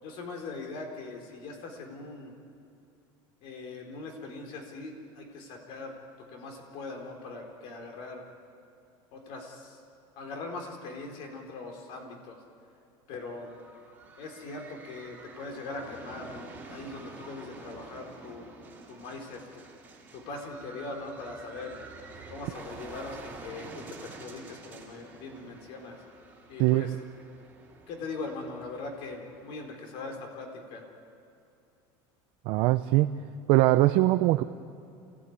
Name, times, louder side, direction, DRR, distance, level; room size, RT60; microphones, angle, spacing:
voice 1, 0.0-2.4 3.4-8.2 9.1-9.8 10.2-12.4 13.1-13.5 14.2-18.5 18.9-19.6 20.1-21.7 22.3-26.0 26.5-26.9 27.9-30.8, left 3 dB, 55° left, 2 dB, 4.2 m, -41 dB
sound 1, 13.1-29.7, right 3 dB, 15° right, 3.0 m, -49 dB
voice 2, 26.6-26.9 32.5-33.1 33.5-34.4, right 17 dB, 55° right, 8 dB, 0.6 m, -22 dB
28.0 x 16.5 x 9.5 m, 2.6 s
cardioid pair, 165°, 11 cm